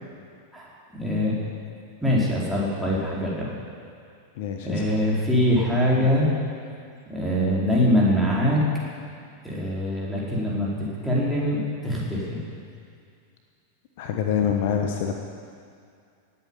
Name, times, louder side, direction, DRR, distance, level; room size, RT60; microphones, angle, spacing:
voice 1, 1.0-1.4 2.0-3.5 4.6-6.3 7.1-8.6 9.4-12.4, equal, ahead, -7 dB, 4.4 m, -23 dB
voice 2, 4.4-4.8 14.0-15.1, left 8 dB, 50° left, 3 dB, 1.1 m, -25 dB
18.5 x 8.5 x 7.3 m, 2.4 s
figure-of-eight pair, 90°, 0 cm